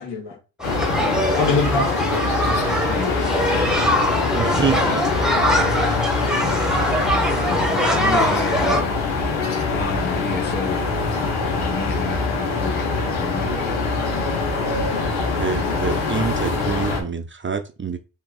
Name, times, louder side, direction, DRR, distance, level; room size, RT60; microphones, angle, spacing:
voice 1, 0.0-2.1, left 3 dB, 70° left, 2.3 m, -25 dB
sound 1, 0.6-17.0, left 3 dB, 85° left, 1.4 m, -23 dB
sound 2, 0.6-8.8, equal, ahead, 1.2 m, -22 dB
voice 2, 2.9-3.9 4.6-4.9 7.4-10.9 11.5-13.8 15.6-15.7, left 4 dB, 25° left, 0.8 m, -32 dB
voice 3, 4.3-5.0 15.3-18.0, right 6 dB, 25° right, 0.7 m, -26 dB
4.4 x 2.9 x 4.1 m
supercardioid pair, 65°, 44 cm